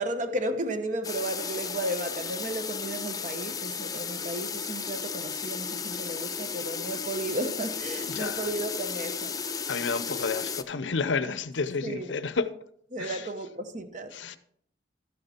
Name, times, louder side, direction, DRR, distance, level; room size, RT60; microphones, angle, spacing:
voice 1, 0.0-9.3 11.8-12.2 12.9-14.4, right 1 dB, 45° right, 0.9 m, -34 dB
sound 1, 1.0-10.6, left 6 dB, 20° left, 0.5 m, -34 dB
voice 2, 8.1-8.5 9.7-12.5 13.0-13.2 14.1-14.4, left 4 dB, 90° left, 0.7 m, -30 dB
13.0 x 6.6 x 4.3 m
head